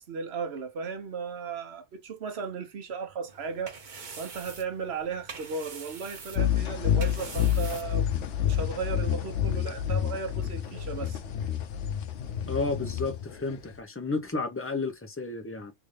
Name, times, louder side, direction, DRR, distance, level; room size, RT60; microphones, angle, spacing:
voice 1, 0.0-3.8 4.2-11.2, right 5 dB, 65° right, 1.1 m, -35 dB
sound 1, 3.3-8.4, right 5 dB, 45° right, 0.9 m, -45 dB
sound 2, 6.4-13.8, left 10 dB, 90° left, 0.9 m, -29 dB
voice 2, 12.5-15.7, left 3 dB, 15° left, 0.6 m, -32 dB
3.5 x 2.7 x 3.2 m
omnidirectional pair, 1.2 m